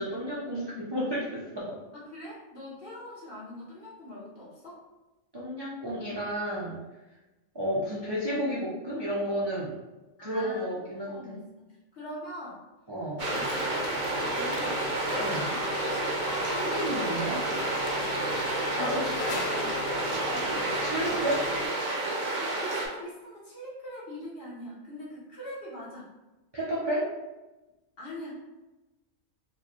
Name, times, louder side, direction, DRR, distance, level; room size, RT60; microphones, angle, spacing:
voice 1, 0.0-1.8 5.3-6.8 7.5-9.7 10.2-11.4 12.9-13.2 15.2-15.5 16.1-17.4 18.8-19.2 20.8-21.4 26.5-27.1, equal, 30° right, -7 dB, 0.4 m, -32 dB
voice 2, 1.9-4.8 10.2-10.7 11.1-12.6 13.2-15.7 16.3-17.6 17.9-18.3 18.8-21.1 22.4-26.1 28.0-28.4, left 1 dB, 50° left, -7 dB, 1.3 m, -43 dB
sound 1, 13.2-21.7, left 3 dB, 90° left, 1.0 m, -37 dB
sound 2, 13.2-22.9, right 2 dB, 85° right, 1.3 m, -30 dB
4.4 x 2.3 x 3.0 m, 1.1 s
omnidirectional pair, 1.4 m